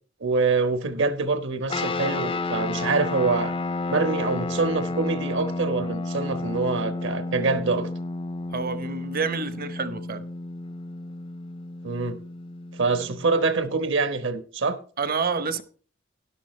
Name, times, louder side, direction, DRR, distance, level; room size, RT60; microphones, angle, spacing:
voice 1, 0.2-3.5 3.9-7.9 11.8-12.2 12.7-14.8, right 3 dB, 65° right, 1.2 m, -25 dB
sound 1, 1.7-13.5, left 2 dB, 25° left, 0.4 m, -31 dB
voice 2, 8.5-10.3 15.0-15.6, right 5 dB, 45° right, 0.9 m, -28 dB
12.5 x 11.0 x 3.2 m
head